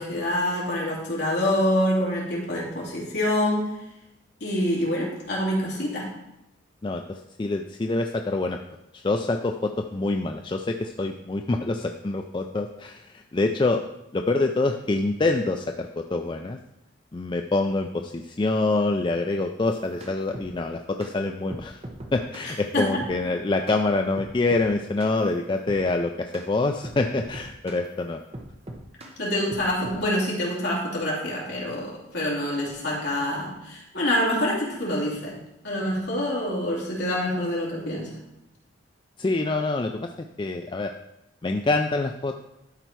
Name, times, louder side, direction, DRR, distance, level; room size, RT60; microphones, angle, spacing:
voice 1, 0.0-3.7 4.4-6.1 22.4-23.0 29.2-35.4 35.6-38.2, left 1 dB, 55° left, -5 dB, 3.0 m, -26 dB
voice 2, 6.8-8.6 8.9-13.8 14.1-16.6 17.1-21.8 22.1-28.2 39.2-40.9 41.4-42.3, left 2 dB, 25° left, 5 dB, 0.3 m, -26 dB
sound 1, 19.7-20.5 21.0-21.1 21.5-22.5 23.0-23.2 23.7-23.8 24.2-24.7 25.0-25.2 25.7-25.9 26.3-26.5 26.8-27.9 28.3-29.2 29.5-30.0, right 1 dB, 30° right, 0.9 m, -40 dB
12.0 x 4.5 x 4.6 m, 0.88 s
head